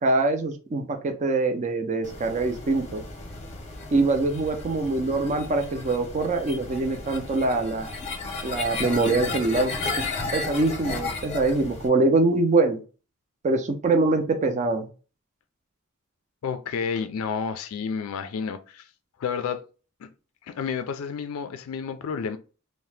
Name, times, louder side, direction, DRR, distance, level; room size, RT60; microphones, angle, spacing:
voice 1, 0.0-3.0 3.9-7.9 8.4-10.0 10.3-12.8 13.4-14.9, right 3 dB, 35° right, 0.4 m, -24 dB
sound 1, 2.0-11.9, left 3 dB, 30° left, 0.6 m, -34 dB
voice 2, 16.4-18.9 19.2-19.6 20.0-20.1 20.4-22.4, left 6 dB, 75° left, 0.3 m, -30 dB
2.7 x 2.1 x 3.2 m
head